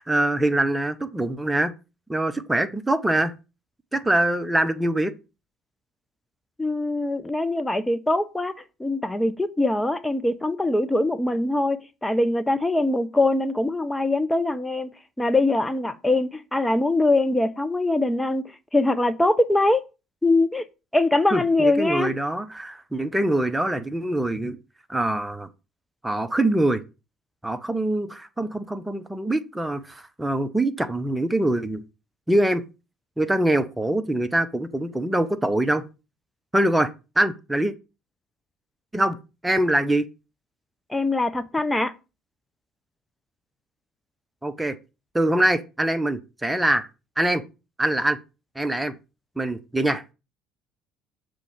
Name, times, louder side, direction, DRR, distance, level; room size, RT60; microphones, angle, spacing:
voice 1, 0.0-1.7 2.1-3.3 3.9-5.1 21.3-24.6 24.9-25.5 26.0-26.8 27.4-31.8 32.3-32.6 33.2-35.8 36.5-36.9 37.2-37.7 38.9-39.2 39.4-40.1 44.4-44.8 45.1-46.9 47.2-47.4 47.8-48.2 48.6-48.9 49.4-50.1, right 1 dB, 10° right, 0.8 m, -23 dB
voice 2, 6.6-8.5 8.8-14.9 15.2-18.5 18.7-19.8 20.2-20.6 20.9-22.1 40.9-41.9, left 2 dB, 10° left, 0.6 m, -22 dB
6.8 x 3.7 x 5.0 m
hypercardioid pair, 60°, 0 cm